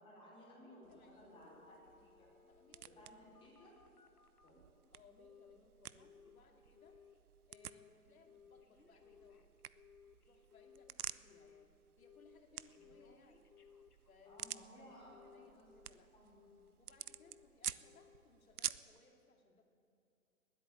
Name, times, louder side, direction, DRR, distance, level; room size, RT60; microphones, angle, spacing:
voice 1, 0.0-2.3 2.8-3.8 4.4-4.6 12.8-12.9 14.2-15.7 16.1-16.4, equal, 10° left, -6 dB, 5.0 m, -59 dB
voice 2, 0.6-3.1 4.9-7.0 7.5-9.5 10.2-13.4 14.1-14.4 14.8-16.1 16.8-19.6, left 3 dB, 65° left, 2 dB, 2.6 m, -67 dB
sound 1, 0.8-19.0, right 10 dB, 75° right, 0.6 m, -51 dB
Telephone, 1.3-4.6 5.2-5.6 5.8-7.2 7.5-7.9 8.3-11.6 12.0-12.4 12.7-14.7 15.1-16.0 16.3-16.7 17.1-17.5 17.8-18.2 18.6-18.7, left 7 dB, 90° left, 1.4 m, -63 dB
19.5 x 8.6 x 8.6 m, 2.5 s
figure-of-eight pair, 135°, 44 cm